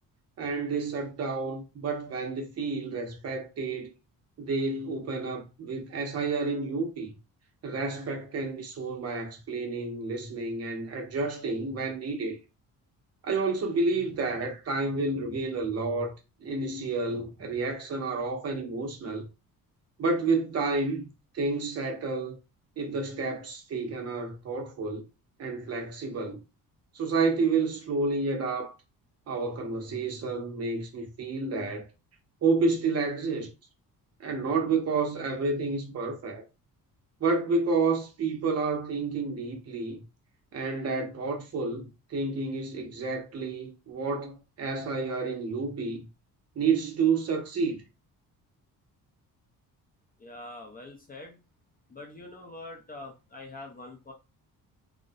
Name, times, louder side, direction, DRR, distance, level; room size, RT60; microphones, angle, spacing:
voice 1, 0.4-3.9 4.4-7.1 7.6-12.4 13.2-16.1 16.4-19.3 20.0-21.1 21.3-22.4 22.8-25.0 25.4-26.4 26.9-28.7 29.3-31.9 32.4-33.5 34.2-36.4 37.2-40.0 40.5-46.1 46.6-47.8, right 4 dB, 45° right, 0.7 m, -30 dB
voice 2, 50.2-51.4 51.9-54.1, left 2 dB, 25° left, 0.4 m, -44 dB
2.4 x 2.1 x 2.6 m
cardioid pair, 130°, 36 cm